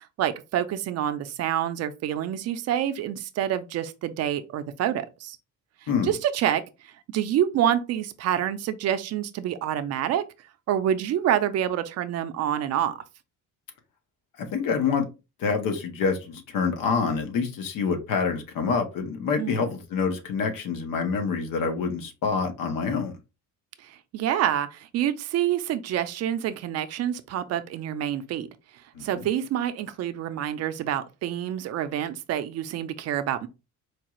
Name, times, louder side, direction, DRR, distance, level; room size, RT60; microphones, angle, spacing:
voice 1, 0.0-5.4 5.8-10.2 10.7-13.0 19.4-19.7 23.8-28.5 29.0-33.5, right 10 dB, 50° right, 0.4 m, -27 dB
voice 2, 14.4-15.0 15.4-23.1 29.0-29.2, left 5 dB, 90° left, 1.1 m, -26 dB
4.6 x 2.4 x 2.9 m
cardioid pair, 175°, 32 cm